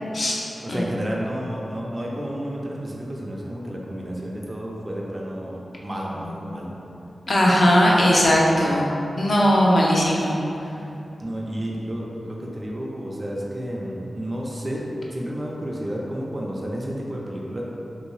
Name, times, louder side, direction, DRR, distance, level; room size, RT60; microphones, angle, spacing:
voice 1, 0.6-6.7 11.2-17.6, equal, 25° right, -4 dB, 0.4 m, -31 dB
voice 2, 7.3-8.9 9.2-10.4, equal, 50° left, -4 dB, 0.6 m, -18 dB
3.1 x 2.7 x 3.1 m, 2.8 s
wide cardioid pair, 100°, 0 cm